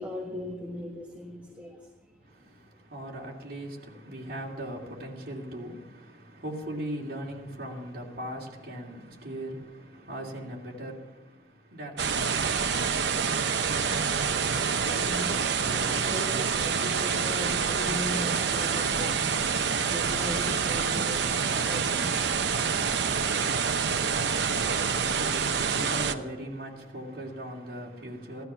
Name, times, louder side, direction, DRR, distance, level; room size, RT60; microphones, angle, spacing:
voice 1, 0.0-1.9 14.8-15.4 15.6-22.4 22.9-23.4, left 1 dB, 10° right, 1.5 m, -38 dB
voice 2, 2.2-12.6 23.8-28.4, right 1 dB, 55° right, 2.8 m, -39 dB
sound 1, 12.0-26.1, right 6 dB, 70° right, 0.8 m, -27 dB
15.5 x 12.5 x 5.7 m
head